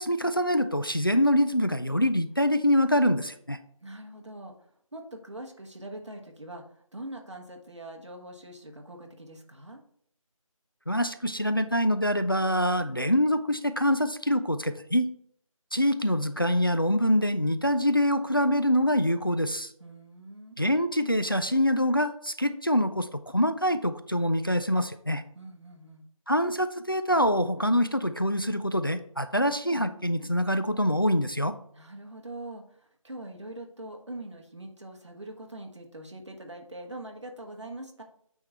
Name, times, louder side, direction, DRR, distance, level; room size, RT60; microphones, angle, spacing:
voice 1, 0.0-3.6 10.9-15.1 15.7-19.7 20.6-25.2 26.3-31.5, equal, 40° left, 10 dB, 0.4 m, -25 dB
voice 2, 3.8-9.8 19.8-20.6 25.3-26.0 31.7-38.0, right 1 dB, 55° right, 2 dB, 1.4 m, -43 dB
8.9 x 3.7 x 4.3 m, 0.65 s
figure-of-eight pair, 175°, 18 cm